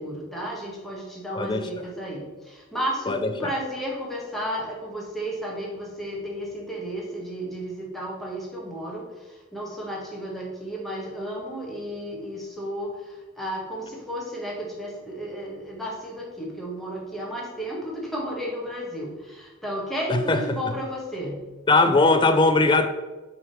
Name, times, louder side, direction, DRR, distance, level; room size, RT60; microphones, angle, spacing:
voice 1, 0.0-21.4, equal, ahead, -4 dB, 1.2 m, -33 dB
voice 2, 3.1-3.5 20.1-20.6 21.7-22.9, left 3 dB, 20° left, 8 dB, 0.4 m, -20 dB
5.9 x 3.6 x 4.6 m, 1.2 s
head